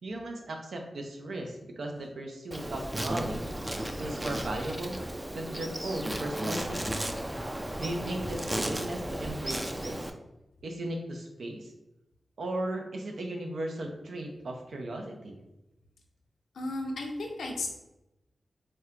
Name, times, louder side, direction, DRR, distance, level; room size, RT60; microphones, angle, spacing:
voice 1, 0.0-3.5 4.0-5.0 5.3-7.1 7.7-10.1 10.6-11.7 12.4-15.4, right 1 dB, 80° right, 2 dB, 0.6 m, -36 dB
Insect, 2.5-10.1, right 1 dB, 15° right, 0.4 m, -35 dB
voice 2, 16.5-17.7, left 2 dB, 90° left, 1 dB, 0.5 m, -34 dB
4.2 x 2.2 x 2.5 m, 0.93 s
cardioid pair, 55°, 0 cm